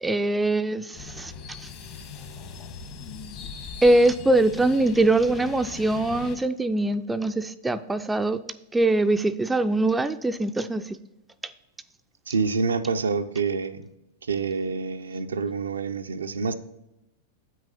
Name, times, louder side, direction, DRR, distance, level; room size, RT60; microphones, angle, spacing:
voice 1, 0.0-1.3 1.6-1.7 3.8-8.4 8.7-11.0 11.4-11.5, right 2 dB, 10° right, 0.4 m, -22 dB
sound 1, 0.9-6.4, left 6 dB, 45° left, 1.3 m, -40 dB
voice 2, 12.3-13.8 14.3-16.5, right 4 dB, 85° right, 0.5 m, -27 dB
8.1 x 6.3 x 4.1 m
hypercardioid pair, 100°, 0 cm